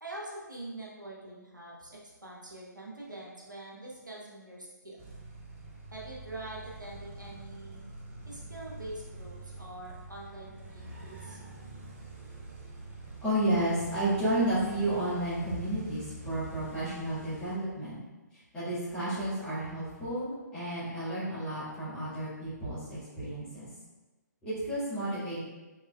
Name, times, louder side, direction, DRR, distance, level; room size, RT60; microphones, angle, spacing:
voice 1, 0.0-5.0 5.9-7.9 8.3-11.4, right 1 dB, 80° right, -5 dB, 1.0 m, -44 dB
sound 1, 5.0-17.6, right 2 dB, 40° right, 0.8 m, -45 dB
voice 2, 13.2-18.0 18.3-23.7 24.4-25.4, right 1 dB, 10° left, -14 dB, 1.5 m, -32 dB
4.4 x 3.2 x 2.2 m, 1.1 s
figure-of-eight pair, 135°, 10 cm